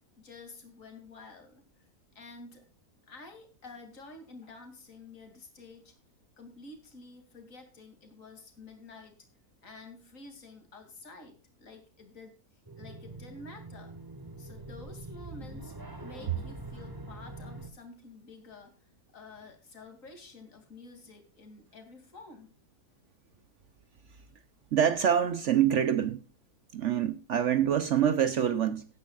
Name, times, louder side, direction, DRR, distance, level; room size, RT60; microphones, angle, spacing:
voice 1, 0.2-1.9 2.1-2.7 3.1-6.0 6.4-9.2 9.6-12.3 12.8-13.9 14.4-15.7 16.0-22.5, left 3 dB, 55° left, 3.1 m, -50 dB
sound 1, 12.6-17.7, right 2 dB, 15° right, 1.8 m, -44 dB
voice 2, 24.7-26.2 26.7-28.9, right 9 dB, 60° right, 0.9 m, -25 dB
17.0 x 10.5 x 2.4 m
omnidirectional pair, 1.7 m